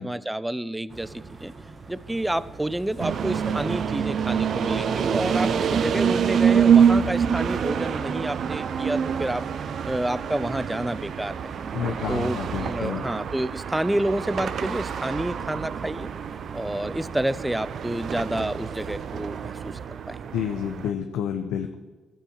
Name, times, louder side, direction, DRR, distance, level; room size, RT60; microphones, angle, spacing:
voice 1, 0.0-1.5 1.9-9.4 9.8-11.4 12.1-16.1 16.5-19.7 20.1-20.3, right 1 dB, 10° right, 17 dB, 0.4 m, -29 dB
sound 1, 0.9-19.9, right 3 dB, 35° right, 1.1 m, -44 dB
sound 2, 3.0-20.9, right 7 dB, 60° right, 0.5 m, -26 dB
voice 2, 11.7-13.1 20.3-21.7, left 8 dB, 85° left, 5 dB, 0.7 m, -29 dB
13.5 x 4.8 x 7.1 m, 1.2 s
cardioid pair, 90°, 0 cm